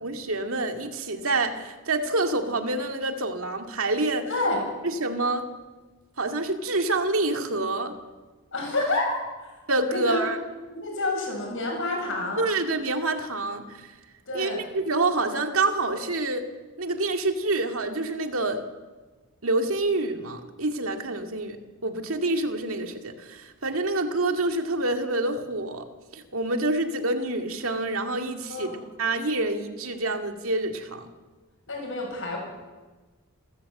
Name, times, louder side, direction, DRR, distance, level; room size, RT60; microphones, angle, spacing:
voice 1, 0.0-4.3 4.8-5.5 6.2-7.9 9.7-10.4 12.4-14.0 14.3-16.4 16.8-18.6 19.4-25.9 26.1-28.7 29.0-31.1, right 2 dB, 65° right, 5 dB, 2.2 m, -27 dB
voice 2, 4.3-4.6 8.5-9.1 9.4-9.5 9.9-10.2 10.7-12.5 14.3-14.6 28.5-28.8 31.7-32.4, left 2 dB, 60° left, 1 dB, 7.4 m, -28 dB
28.5 x 14.0 x 7.8 m, 1.3 s
head